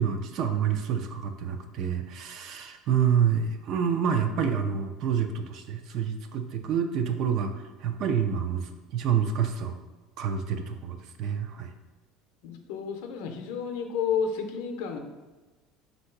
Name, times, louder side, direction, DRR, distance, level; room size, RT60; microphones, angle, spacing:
voice 1, 0.0-9.7 10.2-11.7, right 7 dB, 45° right, 7 dB, 0.4 m, -28 dB
voice 2, 12.4-15.0, left 6 dB, 75° left, 5 dB, 0.6 m, -31 dB
3.7 x 2.7 x 4.4 m, 1.2 s
cardioid pair, 170°, 0 cm